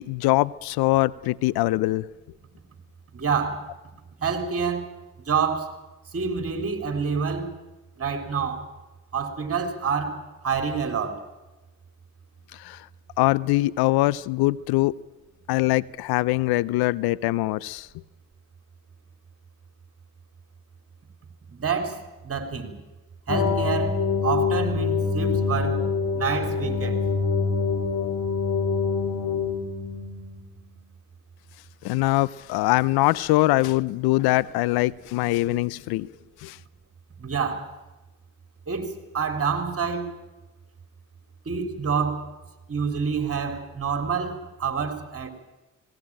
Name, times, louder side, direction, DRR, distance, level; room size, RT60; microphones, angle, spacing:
voice 1, 0.0-2.0 12.6-12.8 13.2-14.9 15.5-17.9 31.8-36.1 36.4-36.6, left 19 dB, 75° left, 0.7 m, -23 dB
voice 2, 3.1-3.7 4.2-4.9 5.2-5.8 6.1-7.5 8.0-8.6 9.1-11.2 21.5-22.7 23.3-25.9 26.1-27.0 37.2-37.7 38.7-40.1 41.5-42.3 42.7-45.3, right 6 dB, 40° right, 3.9 m, -27 dB
sound 1, 23.3-30.4, left 5 dB, 60° left, 4.2 m, -25 dB
18.5 x 18.5 x 8.9 m
supercardioid pair, 60°, 38 cm